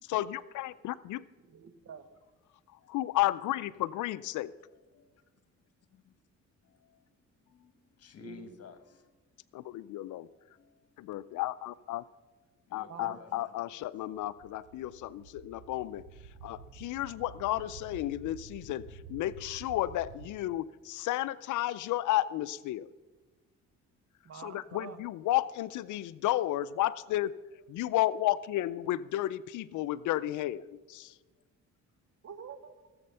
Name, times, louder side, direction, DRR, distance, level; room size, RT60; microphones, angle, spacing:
voice 1, 0.1-1.2 2.9-4.5 9.5-10.3 11.0-12.0 12.7-16.0 16.4-22.9 24.4-27.3 27.7-31.1, left 15 dB, 80° left, 16 dB, 0.5 m, -32 dB
voice 2, 1.4-2.1 8.2-8.6 12.9-13.2 24.2-25.0 32.2-32.8, right 7 dB, 55° right, 10 dB, 1.4 m, -47 dB
voice 3, 2.8-3.2 4.9-5.2 5.9-6.1 6.6-7.0 7.5-9.1 10.4-11.4 12.7-14.3, left 5 dB, 55° left, 9 dB, 1.6 m, -54 dB
sound 1, 14.1-20.3, right 5 dB, 85° right, 1.5 m, -50 dB
17.0 x 7.8 x 5.6 m, 1.3 s
cardioid pair, 90°, 30 cm